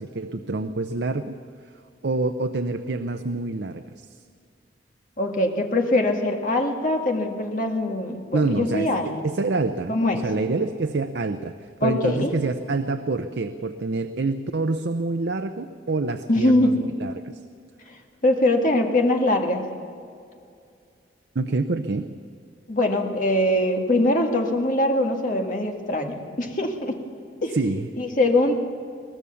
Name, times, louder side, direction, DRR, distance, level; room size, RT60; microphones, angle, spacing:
voice 1, 0.0-1.4 2.0-4.1 8.3-17.4 21.3-22.1 27.5-27.9, right 3 dB, 70° right, 8 dB, 0.6 m, -27 dB
voice 2, 5.2-9.2 9.9-10.2 11.8-12.3 16.3-16.7 18.2-19.6 22.7-27.0 27.4-27.6 28.0-28.6, left 1 dB, 45° left, 2 dB, 1.9 m, -22 dB
22.5 x 18.0 x 7.0 m, 2.4 s
head